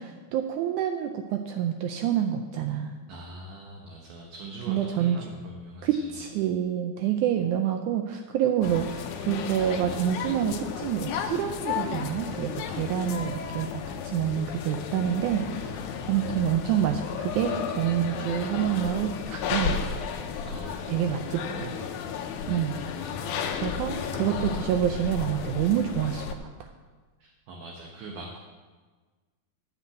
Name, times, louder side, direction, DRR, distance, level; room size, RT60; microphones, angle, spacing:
voice 1, 0.0-3.0 4.7-5.2 5.8-20.0 20.9-21.7 22.5-22.7 23.6-26.2, right 10 dB, 85° right, 5 dB, 1.7 m, -27 dB
voice 2, 3.1-6.2 20.4-21.1 21.4-21.9 23.2-23.9 27.2-28.4, right 2 dB, 70° right, 0 dB, 2.3 m, -42 dB
sound 1, 8.6-26.3, left 7 dB, 75° left, 1.8 m, -33 dB
10.5 x 5.8 x 8.1 m, 1.4 s
omnidirectional pair, 4.2 m